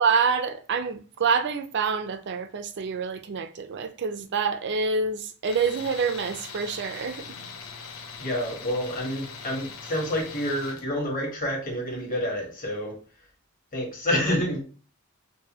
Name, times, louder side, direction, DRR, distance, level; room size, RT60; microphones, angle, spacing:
voice 1, 0.0-7.3, right 5 dB, 55° right, 0.4 m, -27 dB
Tools, 5.4-10.8, left 5 dB, 80° left, 0.8 m, -41 dB
voice 2, 8.2-13.0 13.7-14.6, left 1 dB, 40° left, 1.3 m, -28 dB
4.7 x 2.2 x 2.9 m
head